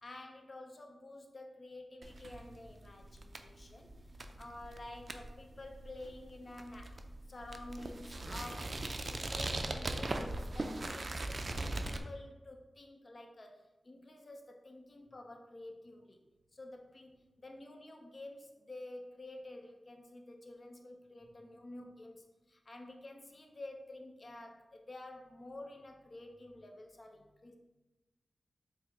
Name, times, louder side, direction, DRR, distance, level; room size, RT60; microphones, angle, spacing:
voice 1, 0.0-7.0 7.3-8.8 9.1-11.5 11.8-16.2 16.5-27.6, left 2 dB, 50° left, 3 dB, 0.6 m, -50 dB
sound 1, 2.0-12.0, right 2 dB, 55° right, 0.3 m, -40 dB
4.3 x 2.0 x 3.6 m, 1.1 s
cardioid pair, 50°, 0 cm